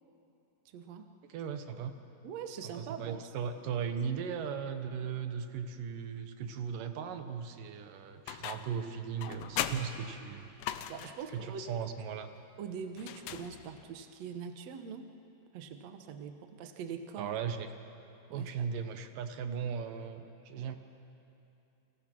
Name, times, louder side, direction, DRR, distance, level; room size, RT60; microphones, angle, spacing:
voice 1, 0.7-1.1 2.2-3.2 10.9-11.7 12.6-15.1 15.5-17.3 18.3-18.7 20.6-20.7, right 6 dB, 90° right, 6 dB, 1.4 m, -43 dB
voice 2, 1.3-1.9 2.6-10.5 11.3-12.3 17.2-17.7 18.3-20.8, right 7 dB, 70° right, 8 dB, 2.3 m, -37 dB
sound 1, 8.3-8.8 9.2-11.3 13.0-13.9, left 11 dB, 85° left, 3.0 m, -39 dB
30.0 x 25.5 x 6.1 m, 2.8 s
omnidirectional pair, 4.9 m